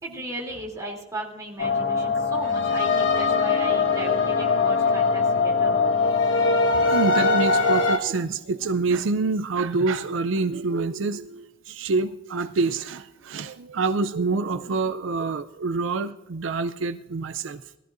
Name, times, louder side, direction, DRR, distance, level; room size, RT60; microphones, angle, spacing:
voice 1, 0.0-5.9, right 1 dB, 20° right, -2 dB, 3.0 m, -36 dB
sound 1, 1.6-8.0, left 4 dB, 70° left, 1.5 m, -21 dB
voice 2, 6.9-17.6, right 3 dB, 75° right, 10 dB, 0.5 m, -26 dB
20.0 x 14.0 x 2.6 m, 0.99 s
head